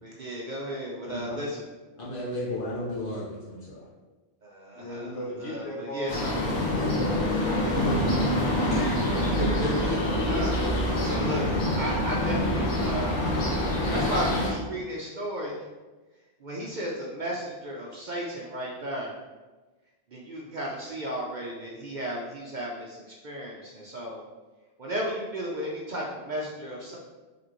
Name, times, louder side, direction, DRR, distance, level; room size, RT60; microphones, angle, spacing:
voice 1, 0.0-1.6 4.4-6.4 9.2-9.3 9.8-10.6 11.0-11.5 11.8-13.2 13.9-15.6 16.4-19.2 20.1-24.2 24.8-27.0, equal, 50° right, -3 dB, 0.6 m, -34 dB
voice 2, 1.1-1.4 2.0-3.8 8.7-8.9 9.4-10.2, left 1 dB, 50° left, -7 dB, 1.5 m, -33 dB
voice 3, 4.7-7.8, left 1 dB, 65° left, -2 dB, 1.1 m, -38 dB
sound 1, 6.1-14.5, left 1 dB, 85° left, 1.3 m, -26 dB
5.1 x 3.4 x 3.0 m, 1.2 s
omnidirectional pair, 1.2 m